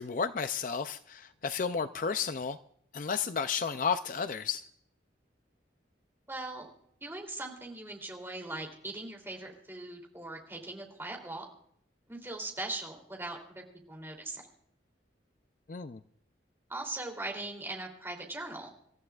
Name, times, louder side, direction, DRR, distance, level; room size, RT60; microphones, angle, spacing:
voice 1, 0.0-2.6 2.9-4.6 15.7-16.0, left 6 dB, 45° left, 11 dB, 0.4 m, -32 dB
voice 2, 6.3-6.7 7.0-11.5 12.1-14.4 16.7-18.7, right 2 dB, 15° right, 1 dB, 3.0 m, -40 dB
27.0 x 14.0 x 2.4 m, 0.68 s
head